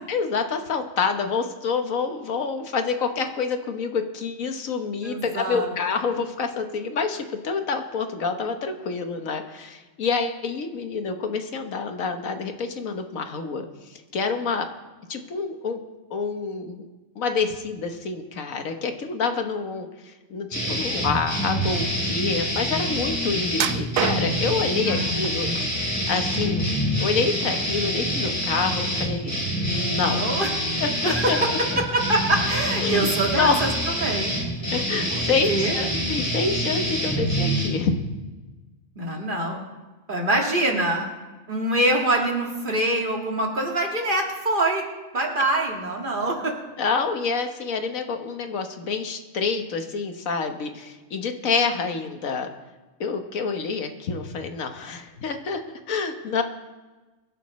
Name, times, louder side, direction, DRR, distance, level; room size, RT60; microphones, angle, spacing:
voice 1, 0.1-14.7 15.1-15.8 16.1-16.9 17.1-25.5 26.1-26.7 27.0-29.4 29.6-30.2 30.8-31.4 32.8-33.1 33.3-33.6 34.7-38.0 46.8-52.5 53.0-55.6 55.9-56.4, left 5 dB, 75° left, 6 dB, 1.5 m, -27 dB
voice 2, 5.0-5.7 24.9-25.5 29.9-30.5 31.0-31.5 31.9-33.7 34.0-34.3 35.1-35.2 35.5-35.8 39.0-39.6 40.1-41.1 41.5-44.8 45.1-46.5, right 1 dB, 40° right, 0 dB, 2.3 m, -24 dB
sound 1, 20.5-37.7, equal, 10° left, 3.8 m, -26 dB
sound 2, 23.5-24.6 25.2-25.9 26.3-27.2 27.6-27.8 28.3-28.4, right 9 dB, 80° right, 1.1 m, -29 dB
24.5 x 11.0 x 3.2 m, 1.2 s
omnidirectional pair, 1.4 m